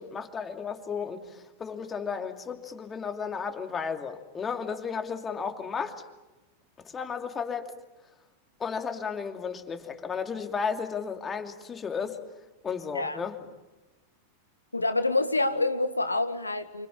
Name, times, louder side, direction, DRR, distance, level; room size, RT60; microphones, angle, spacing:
voice 1, 0.0-6.0 6.8-7.7 8.6-12.2 12.6-13.4, left 6 dB, 20° left, 6 dB, 2.7 m, -34 dB
voice 2, 14.7-16.9, left 2 dB, 80° left, 10 dB, 1.9 m, -27 dB
29.0 x 26.0 x 7.2 m, 1.1 s
figure-of-eight pair, 90°, 0 cm